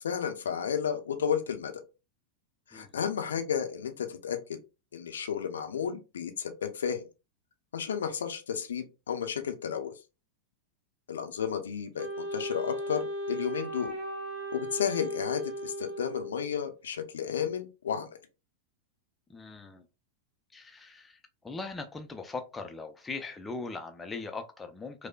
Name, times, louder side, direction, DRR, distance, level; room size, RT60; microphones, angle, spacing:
voice 1, 0.0-1.7 2.7-4.4 4.9-7.1 7.7-9.9 11.1-13.9 14.5-18.1, left 7 dB, 65° left, 0.6 m, -32 dB
Wind instrument woodwind instrument, 12.0-16.6, equal, 40° right, 1.4 m, -36 dB
voice 2, 19.3-19.8 20.5-21.2 21.4-25.1, left 3 dB, 10° left, 0.5 m, -40 dB
4.9 x 2.0 x 2.3 m
figure-of-eight pair, 90°, 0 cm